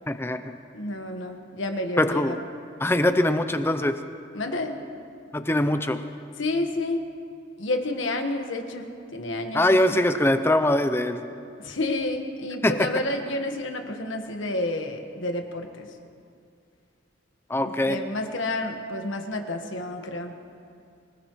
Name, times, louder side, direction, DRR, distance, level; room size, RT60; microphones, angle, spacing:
voice 1, 0.1-0.5 2.0-2.4 2.8-4.0 5.3-6.0 9.5-11.3 12.6-12.9 17.5-18.0, left 1 dB, 10° left, 9 dB, 0.6 m, -22 dB
voice 2, 0.7-2.4 4.3-4.7 6.4-7.0 7.6-10.0 11.6-15.9 17.9-20.3, left 2 dB, 85° left, 4 dB, 1.4 m, -30 dB
25.0 x 18.5 x 3.1 m, 2.3 s
head